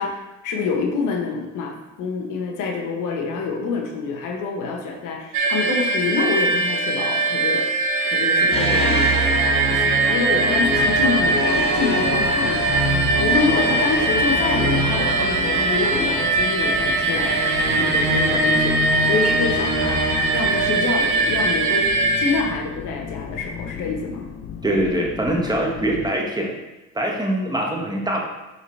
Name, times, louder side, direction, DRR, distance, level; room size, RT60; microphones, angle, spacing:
voice 1, 0.0-24.3, left 4 dB, 90° left, 1 dB, 1.1 m, -27 dB
sound 1, 5.3-22.4, right 3 dB, 80° right, 0.8 m, -21 dB
sound 2, 8.5-21.0, equal, 20° left, 1.5 m, -26 dB
sound 3, 10.5-26.2, left 7 dB, 40° left, 0.4 m, -35 dB
voice 2, 24.6-26.5 26.9-28.2, right 1 dB, 15° right, 0 dB, 1.2 m, -23 dB
5.6 x 5.4 x 3.2 m, 1.0 s
cardioid pair, 90°, 30 cm